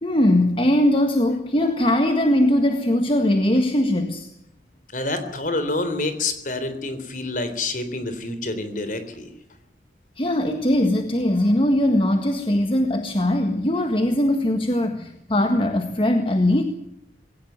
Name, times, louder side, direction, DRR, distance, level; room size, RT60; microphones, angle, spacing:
voice 1, 0.0-4.3 10.2-16.6, left 1 dB, 30° left, 6 dB, 1.6 m, -20 dB
voice 2, 4.9-9.3, left 2 dB, 50° left, 10 dB, 3.7 m, -27 dB
21.0 x 18.0 x 9.4 m, 0.79 s
head